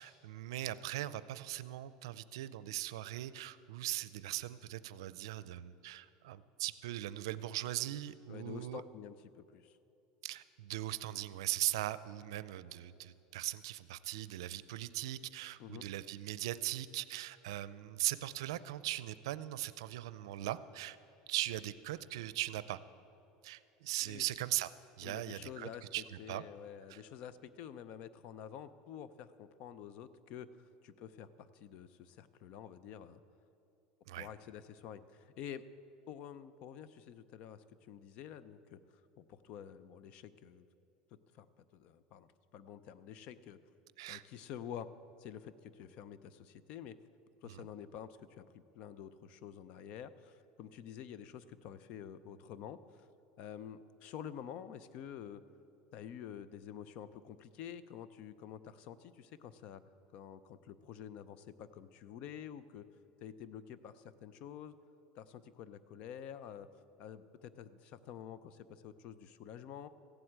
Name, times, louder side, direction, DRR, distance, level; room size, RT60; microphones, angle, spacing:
voice 1, 0.0-8.8 10.2-21.0 21.3-22.8 23.4-24.7 25.0-26.4 26.9-27.0 34.1-34.3 44.0-44.2 47.4-47.7, right 15 dB, 90° right, 16 dB, 0.5 m, -39 dB
voice 2, 8.3-9.8 15.6-15.9 24.0-24.2 25.0-25.9 26.2-30.5 30.8-33.2 34.2-35.7 36.1-38.8 39.2-40.7 41.1-43.6 44.1-44.9 45.2-47.0 47.4-53.1 53.4-55.4 55.9-59.8 60.1-62.8 63.2-64.8 65.2-66.7 67.0-69.9, left 9 dB, 50° left, 15 dB, 0.6 m, -49 dB
15.0 x 7.9 x 8.8 m, 2.8 s
supercardioid pair, 145°, 2 cm